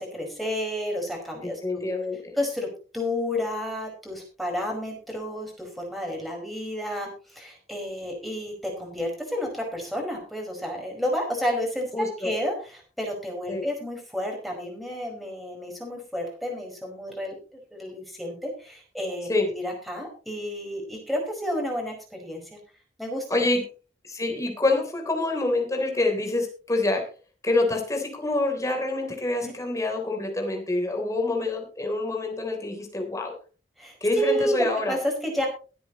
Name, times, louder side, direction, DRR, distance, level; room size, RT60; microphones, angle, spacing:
voice 1, 0.0-1.9 2.4-17.3 17.7-22.6 23.0-23.5 29.4-29.5 33.8-35.5, equal, ahead, 0 dB, 4.9 m, -31 dB
voice 2, 1.6-2.3 11.9-12.3 13.5-13.7 19.3-19.5 23.3-23.6 24.0-27.0 27.4-33.3 34.0-35.0, left 2 dB, 20° left, 2 dB, 3.4 m, -26 dB
22.0 x 8.5 x 3.0 m, 0.35 s
head